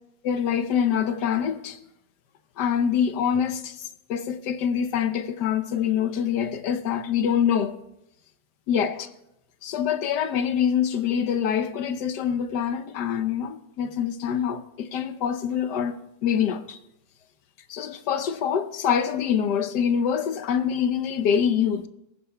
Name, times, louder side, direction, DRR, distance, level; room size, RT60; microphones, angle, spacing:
voice 1, 0.2-1.8 2.6-3.7 4.1-7.7 8.7-9.1 9.6-16.8 17.7-21.9, left 8 dB, 85° left, 1.4 m, -25 dB
22.0 x 14.0 x 2.3 m
omnidirectional pair, 1.7 m